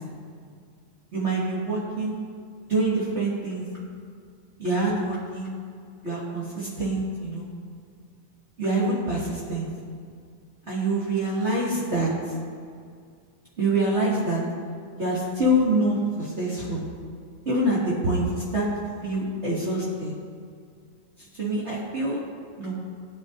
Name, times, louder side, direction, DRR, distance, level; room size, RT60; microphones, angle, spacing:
voice 1, 1.1-2.1 2.7-3.7 4.6-5.5 6.0-7.5 8.6-9.7 10.7-12.1 13.6-14.4 15.0-16.8 17.5-18.7 19.0-20.1 21.3-22.2 22.6-22.7, right 1 dB, 25° right, -8 dB, 1.9 m, -25 dB
19.5 x 11.0 x 2.7 m, 2.2 s
omnidirectional pair, 3.9 m